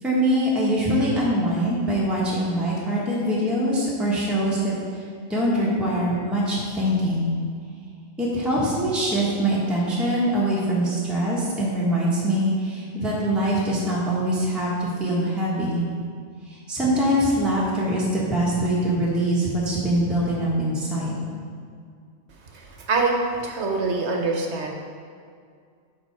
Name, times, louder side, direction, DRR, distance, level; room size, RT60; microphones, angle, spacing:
voice 1, 0.0-5.0 5.3-7.3 8.2-15.8 16.5-21.2, right 1 dB, ahead, -6 dB, 1.2 m, -23 dB
voice 2, 22.5-23.1 23.4-24.7, right 4 dB, 60° right, 1 dB, 1.1 m, -25 dB
7.8 x 4.6 x 4.6 m, 2.2 s
omnidirectional pair, 1.4 m